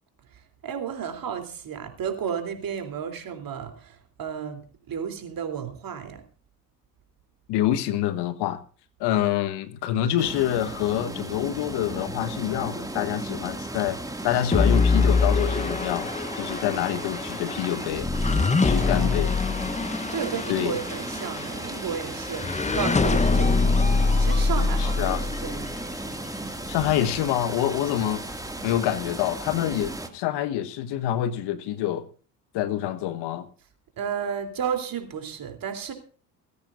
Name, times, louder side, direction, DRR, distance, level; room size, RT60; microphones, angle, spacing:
voice 1, 0.6-6.2 18.6-19.2 20.1-23.8 24.2-25.7 34.0-35.9, right 7 dB, 45° right, 3.3 m, -33 dB
voice 2, 7.5-8.6 9.0-18.1 18.6-19.3 20.5-20.8 24.8-25.2 26.7-32.1 32.5-33.5, left 12 dB, 60° left, 1.4 m, -26 dB
sound 1, 10.2-30.1, right 1 dB, 10° right, 2.2 m, -35 dB
sound 2, 14.5-25.8, left 4 dB, 15° left, 1.0 m, -24 dB
19.0 x 15.0 x 2.6 m
figure-of-eight pair, 50°, 46 cm